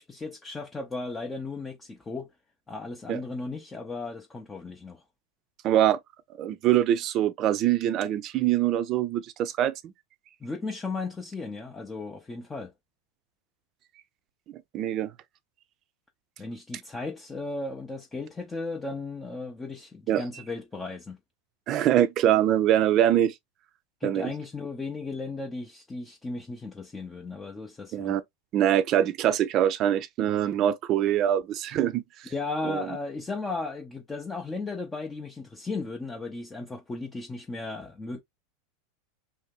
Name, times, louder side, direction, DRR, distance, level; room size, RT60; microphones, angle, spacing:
voice 1, 0.0-2.3 2.7-5.0 10.4-12.7 16.4-21.2 24.0-28.2 32.3-38.2, left 3 dB, 15° left, 0.6 m, -35 dB
voice 2, 5.6-6.0 6.4-9.9 14.7-15.1 20.1-20.2 21.7-23.3 24.0-24.3 27.9-28.2 28.5-32.0 32.7-32.8, right 11 dB, 45° right, 0.5 m, -24 dB
2.7 x 2.2 x 3.6 m
hypercardioid pair, 95°, 0 cm